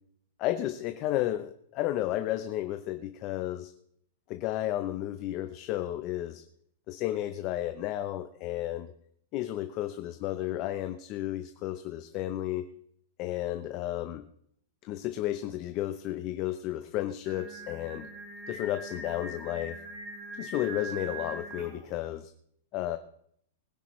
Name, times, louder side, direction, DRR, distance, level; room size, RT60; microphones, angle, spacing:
voice 1, 0.4-3.7 4.3-6.4 6.9-8.9 9.3-12.7 13.2-14.2 14.8-18.1 18.5-19.8 20.4-22.3 22.7-23.0, left 14 dB, 30° left, 9 dB, 0.7 m, -32 dB
Singing, 17.3-22.0, right 2 dB, 30° right, 4.4 m, -42 dB
20.5 x 10.0 x 3.2 m, 0.67 s
supercardioid pair, 170°, 0 cm